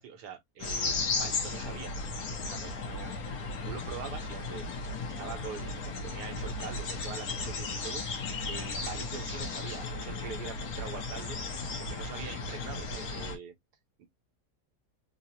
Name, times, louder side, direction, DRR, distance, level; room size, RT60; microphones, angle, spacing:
voice 1, 0.0-1.9 2.4-4.6 5.0-11.4 11.7-13.5 14.0-14.1, right 6 dB, 80° right, 1.5 m, -44 dB
sound 1, 0.6-13.4, left 3 dB, 65° left, 1.2 m, -35 dB
3.7 x 2.0 x 2.7 m
omnidirectional pair, 1.7 m